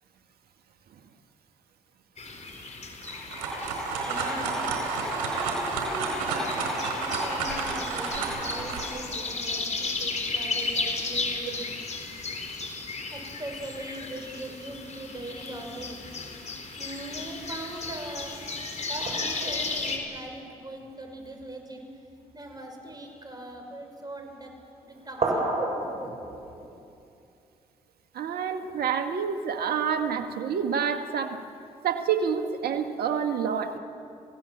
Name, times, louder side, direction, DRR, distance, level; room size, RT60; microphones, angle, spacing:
sound 1, 2.2-20.0, left 3 dB, 45° left, 4.1 m, -35 dB
sound 2, 3.0-8.8, right 3 dB, 90° right, 4.4 m, -30 dB
voice 1, 4.1-4.6 5.2-11.7 13.1-16.0 16.8-18.4 18.9-21.9 22.3-24.5 24.8-25.5, right 1 dB, 25° right, 3 dB, 6.1 m, -40 dB
sound 3, 15.8-16.9 19.0-21.3 22.1-22.3 22.6-23.3 24.2-24.6 25.0-26.8, right 2 dB, 45° right, 7.6 m, -34 dB
voice 2, 28.1-31.4 31.8-33.8, right 7 dB, 70° right, 7 dB, 1.8 m, -28 dB
29.5 x 16.5 x 7.5 m, 2.6 s
supercardioid pair, 50°, 16 cm